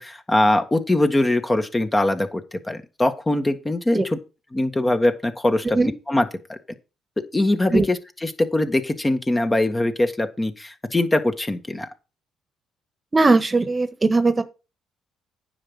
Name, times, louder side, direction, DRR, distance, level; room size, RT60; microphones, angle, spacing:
voice 1, 0.0-4.2 4.5-5.8 6.1-6.6 7.2-11.9, left 1 dB, 20° left, 1.7 m, -22 dB
voice 2, 13.1-14.4, right 3 dB, 30° right, 1.4 m, -19 dB
9.8 x 6.0 x 5.5 m
hypercardioid pair, 60°, 0 cm